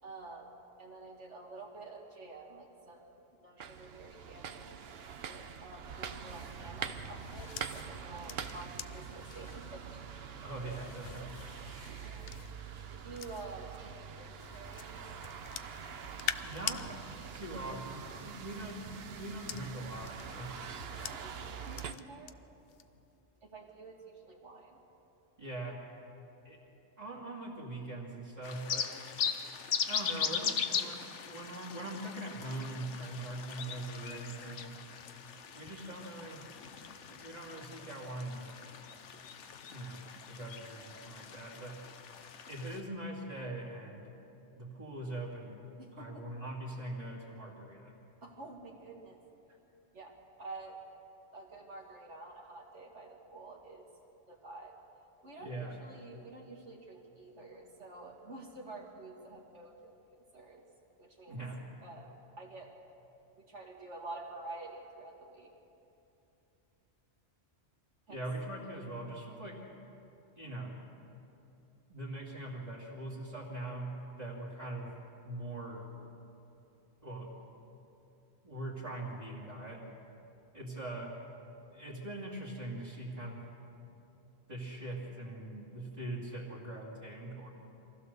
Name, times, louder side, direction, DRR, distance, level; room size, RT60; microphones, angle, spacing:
voice 1, 0.0-4.8 5.1-10.0 12.0-12.3 12.9-15.0 17.2-17.3 21.0-22.4 23.4-24.8 45.8-46.2 48.2-49.2 49.9-50.8 51.3-53.8 54.3-54.8 55.2-60.7 61.0-61.4 61.8-62.7 63.4-65.5 68.1-68.2, right 3 dB, 80° right, 0 dB, 2.6 m, -49 dB
sound 1, 3.6-21.9, right 7 dB, 60° right, 1.0 m, -45 dB
sound 2, 6.2-13.8 14.4-16.8 18.1-22.3 22.7-23.0, left 9 dB, 60° left, 0.8 m, -46 dB
voice 2, 10.4-11.6 16.4-16.9 17.3-20.7 25.4-25.8 26.4-26.6 27.0-28.9 29.8-34.8 35.5-36.4 37.1-38.5 39.7-41.8 42.5-44.1 44.6-45.6 45.9-47.9 55.4-55.7 61.3-61.6 68.1-69.6 70.4-70.8 71.9-74.9 75.2-75.9 77.0-77.3 78.4-79.9 80.5-81.2 81.7-83.4 84.5-87.5, right 1 dB, 35° right, -7 dB, 2.7 m, -42 dB
sound 3, 28.4-42.8, left 7 dB, 85° left, 1.2 m, -39 dB
24.0 x 16.0 x 6.8 m, 2.9 s
omnidirectional pair, 1.2 m